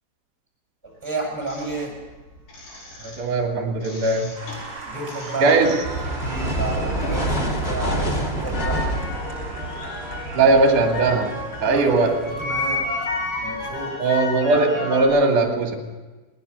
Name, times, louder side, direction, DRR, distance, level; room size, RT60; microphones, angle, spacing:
voice 1, 1.0-1.9 4.9-5.6 6.1-8.8 11.6-11.9 12.4-12.8 13.4-14.0, right 3 dB, ahead, 0 dB, 5.5 m, -31 dB
sound 1, 1.4-3.4 3.7-7.4 7.7-15.1, left 2 dB, 70° left, 7.3 m, -32 dB
voice 2, 3.0-4.4 5.4-5.8 10.3-12.2 14.0-15.7, right 3 dB, 40° right, 2 dB, 3.2 m, -19 dB
Applause, 4.4-14.4, right 3 dB, 25° right, 7.9 m, -40 dB
sound 2, 5.8-13.8, right 1 dB, 20° left, 2.0 m, -28 dB
21.0 x 19.5 x 6.8 m, 1.2 s
omnidirectional pair, 5.0 m